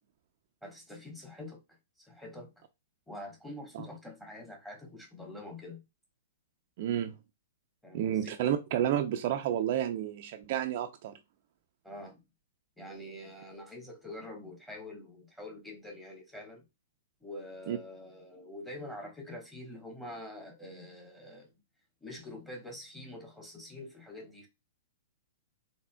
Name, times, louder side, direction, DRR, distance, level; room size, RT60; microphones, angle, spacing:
voice 1, 0.6-1.6 2.0-2.5 3.1-5.8 7.8-8.3 11.8-12.2 12.8-16.6 17.2-21.5 22.0-24.5, left 1 dB, 5° left, 1.5 m, -45 dB
voice 2, 6.8-7.1 7.9-11.1 17.7-17.8, right 11 dB, 50° right, 0.4 m, -30 dB
4.2 x 3.5 x 2.3 m
figure-of-eight pair, 110°, 0 cm